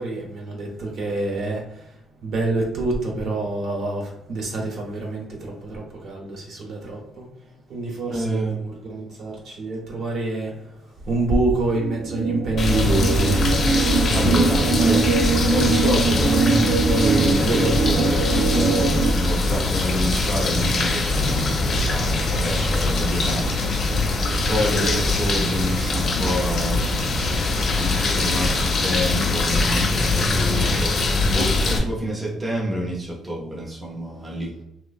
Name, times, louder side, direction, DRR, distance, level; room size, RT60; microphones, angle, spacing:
voice 1, 0.0-1.6 2.2-7.2 7.7-10.5 11.1-13.4 14.8-15.0 20.5-20.7, right 2 dB, 60° right, 0 dB, 0.8 m, -26 dB
voice 2, 8.1-8.6 14.1-15.0 15.4-23.8 24.5-31.0 31.3-34.5, equal, 10° right, -3 dB, 0.5 m, -28 dB
sound 1, 11.8-19.1, right 4 dB, 85° right, 0.3 m, -22 dB
sound 2, 12.6-31.8, left 2 dB, 40° left, 0.5 m, -22 dB
Typing, 20.6-28.7, left 4 dB, 85° left, 0.6 m, -37 dB
3.2 x 2.0 x 2.3 m, 0.83 s
cardioid pair, 165°, 0 cm